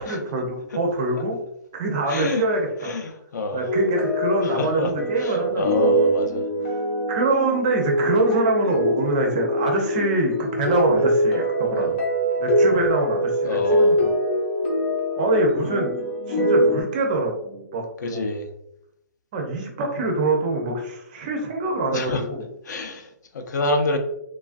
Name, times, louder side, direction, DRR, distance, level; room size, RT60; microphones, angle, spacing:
voice 1, 0.0-1.4 1.7-3.0 3.5-5.7 7.1-12.0 12.4-14.1 15.2-15.9 16.3-18.2 19.3-22.4, right 2 dB, 25° right, 1 dB, 0.4 m, -24 dB
voice 2, 2.1-2.4 2.8-3.6 4.4-4.9 5.2-6.7 11.8-11.9 13.4-14.0 18.0-18.5 21.9-22.2 22.6-24.0, left 2 dB, 70° left, 5 dB, 0.5 m, -27 dB
sound 1, 3.7-16.8, right 1 dB, 35° left, 0.7 m, -23 dB
3.1 x 2.3 x 2.4 m, 0.78 s
hypercardioid pair, 170°, 10 cm